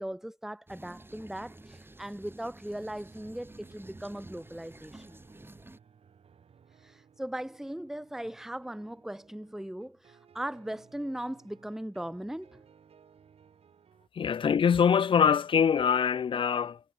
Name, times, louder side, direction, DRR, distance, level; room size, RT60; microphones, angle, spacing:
voice 1, 0.0-5.2 6.7-12.6, right 1 dB, 5° right, 0.8 m, -39 dB
sound 1, 0.7-5.8, right 2 dB, 20° right, 4.6 m, -51 dB
sound 2, 3.1-14.1, right 7 dB, 90° right, 1.4 m, -61 dB
voice 2, 14.1-16.8, left 7 dB, 60° left, 0.4 m, -24 dB
wide cardioid pair, 75°, 10 cm